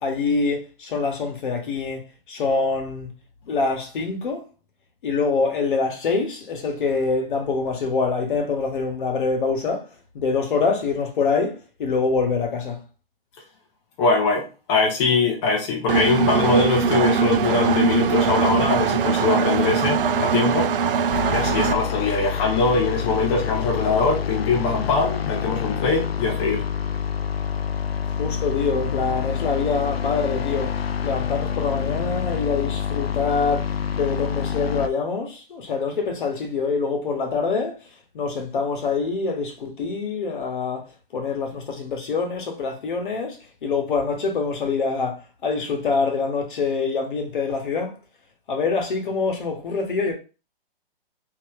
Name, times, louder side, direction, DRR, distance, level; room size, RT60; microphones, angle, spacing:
voice 1, 0.0-3.1 3.5-4.4 5.0-9.9 10.1-12.8 28.1-30.7 31.0-47.9 48.5-50.1, left 4 dB, 60° left, 1.3 m, -25 dB
voice 2, 14.0-20.7 21.2-26.6, left 4 dB, 30° left, 0.7 m, -22 dB
Engine, 15.9-21.7, right 6 dB, 65° right, 0.5 m, -21 dB
sound 1, 21.1-34.9, left 8 dB, 85° left, 0.5 m, -27 dB
3.2 x 2.8 x 3.3 m
hypercardioid pair, 135°, 29 cm